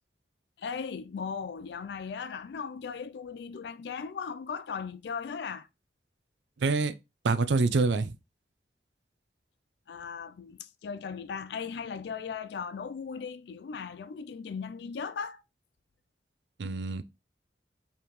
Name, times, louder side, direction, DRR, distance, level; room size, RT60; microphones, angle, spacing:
voice 1, 0.6-5.7 9.9-15.4, left 6 dB, 65° left, 0.4 m, -37 dB
voice 2, 6.6-6.9 7.2-8.2 16.6-17.0, right 3 dB, 75° right, 0.5 m, -26 dB
4.8 x 3.5 x 3.0 m
head